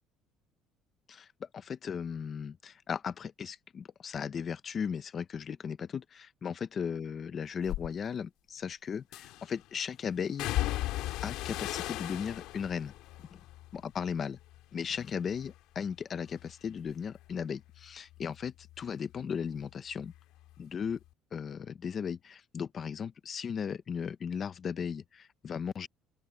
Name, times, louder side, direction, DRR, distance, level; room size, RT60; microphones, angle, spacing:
voice 1, 1.1-10.5 11.2-12.9 13.8-14.4 14.7-20.1 20.6-21.0 21.3-25.9, left 7 dB, 30° left, 0.8 m, -36 dB
sound 1, 7.6-7.9 9.1-9.6 10.4-14.6 14.9-15.6 15.9-19.2 19.5-20.6 20.9-21.1, left 16 dB, 70° left, 2.0 m, -38 dB
open air
cardioid pair, 170°, 0 cm